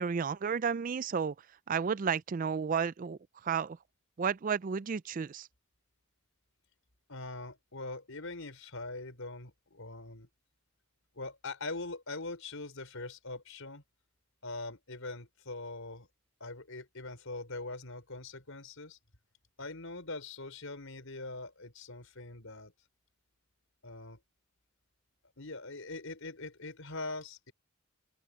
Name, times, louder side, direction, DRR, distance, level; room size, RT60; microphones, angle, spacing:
voice 1, 0.0-1.3 1.7-3.8 4.2-5.5, right 6 dB, 40° right, 0.4 m, -32 dB
voice 2, 7.1-10.3 11.1-13.8 14.4-16.1 16.4-19.0 19.6-22.7 23.8-24.2 25.4-27.5, left 2 dB, 75° left, 4.5 m, -42 dB
head